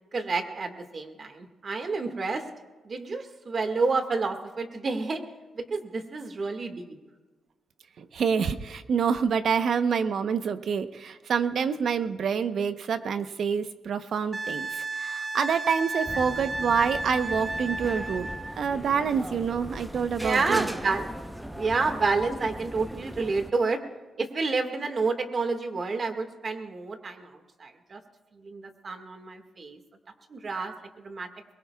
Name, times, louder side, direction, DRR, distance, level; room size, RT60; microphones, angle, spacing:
voice 1, 0.1-2.4 2.8-5.2 5.5-7.0 20.2-21.0 21.4-23.8 24.2-27.3 27.6-28.0 28.3-29.8 30.3-31.3, right 4 dB, 50° right, 6 dB, 1.9 m, -29 dB
voice 2, 8.0-18.3 18.6-20.7, right 6 dB, 70° right, 10 dB, 0.9 m, -27 dB
Wind instrument woodwind instrument, 14.3-18.6 21.3-21.4, right 2 dB, 25° right, 1.2 m, -33 dB
sound 1, 16.1-23.5, equal, 5° right, 0.8 m, -38 dB
23.5 x 21.5 x 2.4 m, 1.2 s
cardioid pair, 70°, 0 cm